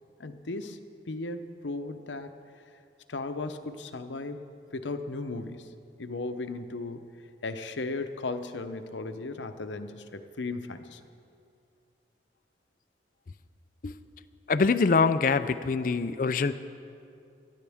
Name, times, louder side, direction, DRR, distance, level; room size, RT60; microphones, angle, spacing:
voice 1, 0.2-0.8 1.1-2.3 3.1-5.7 6.0-7.1 7.4-11.0, left 3 dB, 85° left, 8 dB, 0.8 m, -36 dB
voice 2, 14.5-16.5, left 4 dB, 50° left, 12 dB, 0.5 m, -24 dB
21.0 x 13.5 x 3.5 m, 2.5 s
head